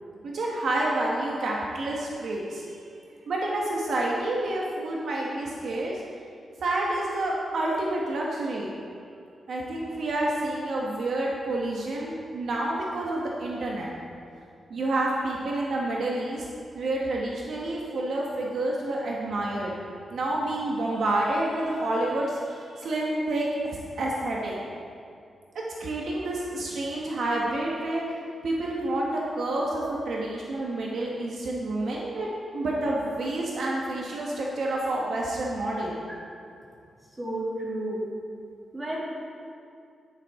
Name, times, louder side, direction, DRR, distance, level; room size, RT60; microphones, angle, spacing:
voice 1, 0.2-2.8 3.3-6.0 6.6-8.7 9.5-13.9 14.7-16.4 16.7-19.7 20.1-23.5 24.0-24.6 25.8-28.1 28.4-32.3 32.5-36.0, right 2 dB, 60° right, -3 dB, 1.2 m, -29 dB
voice 2, 37.2-38.1 38.7-39.0, right 1 dB, 15° right, -7 dB, 2.5 m, -31 dB
10.5 x 9.9 x 3.6 m, 2.5 s
wide cardioid pair, 180°, 0 cm